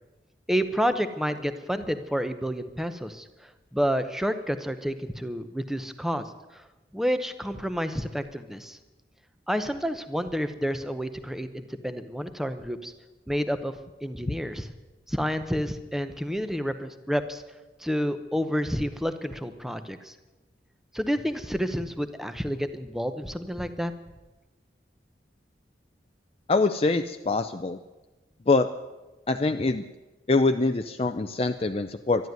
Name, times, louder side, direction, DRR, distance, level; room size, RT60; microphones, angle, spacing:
voice 1, 0.5-3.3 3.7-6.2 6.5-6.6 6.9-8.8 9.5-12.9 13.3-14.7 15.1-17.4 17.8-20.1 20.9-23.9, equal, ahead, 10 dB, 0.8 m, -29 dB
voice 2, 26.5-27.8 28.5-28.7 29.3-29.9 30.3-32.3, left 3 dB, 35° left, 7 dB, 0.5 m, -24 dB
12.5 x 12.0 x 9.3 m, 1.1 s
head